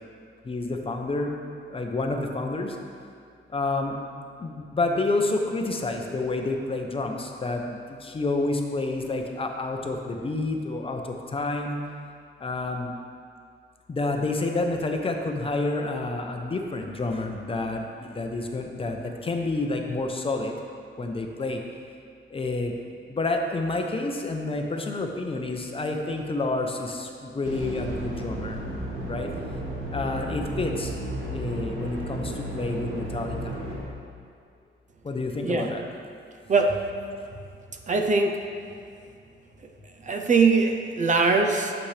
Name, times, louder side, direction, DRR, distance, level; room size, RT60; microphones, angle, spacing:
voice 1, 0.4-1.3 1.7-2.8 3.5-4.0 4.4-11.8 12.4-12.9 13.9-20.5 21.0-21.6 22.3-22.7 23.1-28.6 29.1-29.3 29.9-31.0 31.3-33.6 35.0-35.9, left 2 dB, 25° left, 3 dB, 0.7 m, -29 dB
Air Raid, 27.4-33.8, right 1 dB, 75° right, 1.9 m, -33 dB
voice 2, 36.5-36.9 37.9-38.5 40.0-41.7, right 4 dB, 35° right, 4 dB, 0.6 m, -22 dB
11.5 x 7.1 x 3.3 m, 2.3 s
wide cardioid pair, 155°, 20 cm